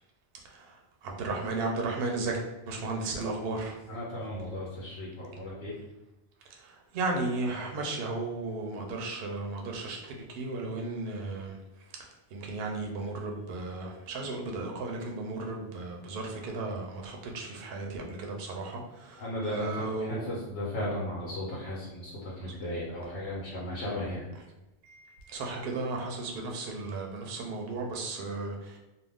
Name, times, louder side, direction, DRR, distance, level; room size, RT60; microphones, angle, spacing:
voice 1, 0.4-0.8 1.0-3.8 6.6-11.6 12.3-20.2 24.8-28.8, right 3 dB, 70° right, 1 dB, 0.8 m, -35 dB
voice 2, 3.9-5.8 19.2-24.3, left 1 dB, 85° left, -5 dB, 1.0 m, -35 dB
2.4 x 2.2 x 3.4 m, 1.0 s
omnidirectional pair, 1.1 m